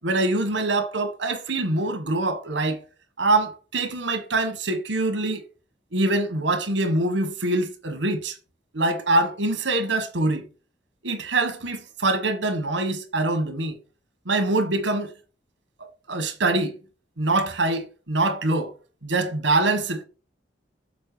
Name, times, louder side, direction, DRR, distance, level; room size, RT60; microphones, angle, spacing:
voice 1, 0.0-2.8 3.2-5.4 5.9-8.4 8.7-10.5 11.0-13.8 14.2-15.1 15.8-16.8 17.2-18.7 19.0-20.0, right 2 dB, 85° right, 1.5 m, -24 dB
6.7 x 4.4 x 5.0 m
head